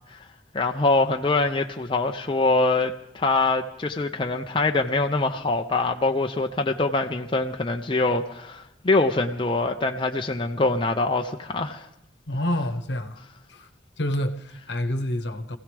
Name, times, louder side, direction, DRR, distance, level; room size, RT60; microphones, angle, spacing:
voice 1, 0.5-11.9, left 2 dB, 25° left, 3 dB, 0.6 m, -24 dB
voice 2, 12.3-13.2 13.5-13.7 14.0-15.6, left 1 dB, 70° left, 8 dB, 1.1 m, -28 dB
26.0 x 16.0 x 3.4 m, 0.81 s
head